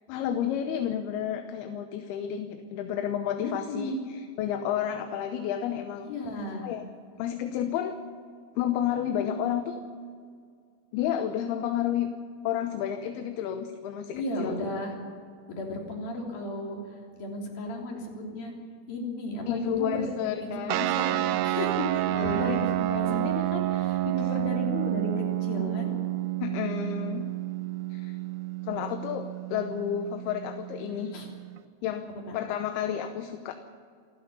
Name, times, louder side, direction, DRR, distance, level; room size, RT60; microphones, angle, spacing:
voice 1, 0.1-6.1 6.6-6.9 7.2-8.0 8.6-9.8 10.9-12.1 12.4-14.6 19.5-20.9 22.1-22.7 26.4-27.3 27.9-28.2 28.6-31.2 31.8-32.1 32.3-33.6, left 9 dB, 75° left, 7 dB, 2.8 m, -31 dB
voice 2, 3.4-4.0 6.1-6.7 14.1-14.9 15.5-16.8 17.2-18.5 18.9-20.1 20.4-20.5 21.0-25.9 31.1-31.3 32.3-32.4, left 1 dB, 60° left, 0 dB, 5.1 m, -34 dB
sound 1, 20.7-31.6, right 15 dB, 80° right, 2.3 m, -30 dB
28.0 x 11.0 x 9.8 m, 2.1 s
omnidirectional pair, 4.8 m